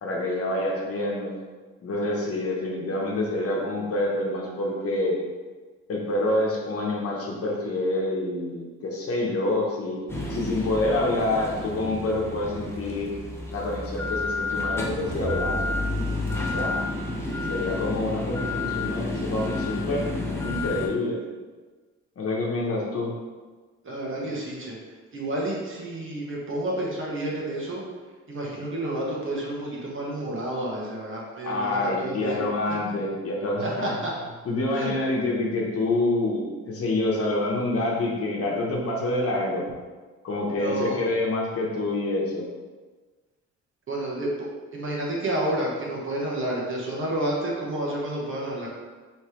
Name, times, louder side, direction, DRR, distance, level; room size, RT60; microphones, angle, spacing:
voice 1, 0.0-1.3 1.8-5.2 5.9-10.0 10.3-13.1 13.5-15.8 16.5-16.9 17.5-20.0 20.4-21.2 22.2-23.1 31.4-34.0 34.4-39.7 40.2-42.5, left 2 dB, 50° left, -2 dB, 1.1 m, -27 dB
sound 1, 10.1-20.9, left 2 dB, 10° left, 0.9 m, -30 dB
voice 2, 23.8-24.8 25.1-27.8 28.3-32.4 33.6-34.1 34.7-35.0 40.6-41.0 43.9-44.3 44.7-48.7, right 1 dB, 40° right, -4 dB, 1.3 m, -30 dB
3.3 x 3.2 x 4.4 m, 1.4 s
cardioid pair, 90°, 30 cm